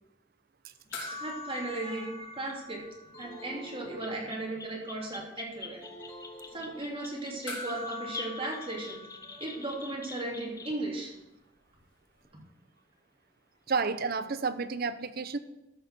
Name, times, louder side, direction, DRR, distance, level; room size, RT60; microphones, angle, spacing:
sound 1, 0.9-3.6 3.8-3.9 7.5-10.1 12.2-12.3, left 3 dB, 80° left, 3.2 m, -43 dB
sound 2, 0.9-1.0 1.5-1.6 2.4-2.6 3.2-3.3 3.6-10.9 12.2-12.3 13.7-14.0, left 4 dB, 20° left, 0.9 m, -46 dB
voice 1, 1.0-2.8 3.2-5.8 6.5-11.1, right 2 dB, 30° right, -2 dB, 2.8 m, -36 dB
sound 3, 3.1-4.7 5.7-7.3, equal, 50° left, 2.9 m, -49 dB
voice 2, 13.7-15.4, right 4 dB, 50° right, 12 dB, 0.7 m, -30 dB
13.5 x 5.7 x 6.8 m, 0.94 s
head